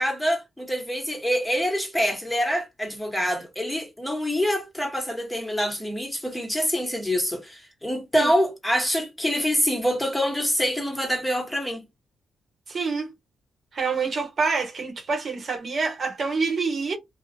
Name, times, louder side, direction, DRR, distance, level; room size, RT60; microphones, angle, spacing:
voice 1, 0.0-11.8, equal, 10° left, 1.1 m, -25 dB
voice 2, 12.7-13.1 13.7-17.0, right 4 dB, 55° right, 0.9 m, -26 dB
2.4 x 2.0 x 2.8 m
supercardioid pair, 55°, 0 cm